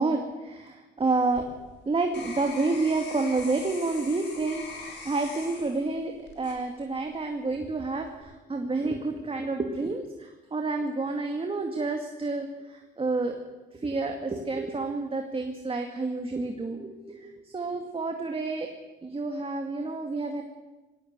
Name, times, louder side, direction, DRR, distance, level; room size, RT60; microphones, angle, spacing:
voice 1, 0.0-1.5 1.9-13.4 13.7-18.7 19.0-20.4, right 3 dB, 30° right, 4 dB, 2.2 m, -29 dB
sound 1, 1.0-7.2 7.7-8.2, left 4 dB, 65° left, 6.0 m, -43 dB
19.5 x 16.5 x 8.2 m, 1.1 s
cardioid pair, 90°, 20 cm